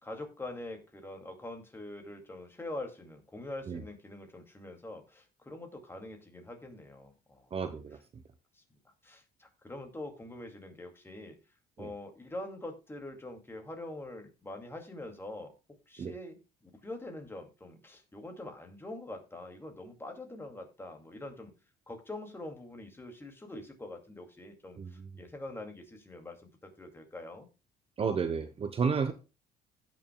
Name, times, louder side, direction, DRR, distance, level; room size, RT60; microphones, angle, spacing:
voice 1, 0.0-7.5 8.5-8.6 9.0-11.4 11.8-15.5 15.9-21.5 21.9-27.5, left 2 dB, 15° left, 3 dB, 2.3 m, -44 dB
voice 2, 7.5-8.2 11.8-11.9 16.0-16.1 24.8-25.1 28.0-29.1, right 6 dB, 35° right, 9 dB, 0.9 m, -32 dB
16.5 x 6.1 x 2.2 m, 0.30 s
cardioid pair, 110°, 17 cm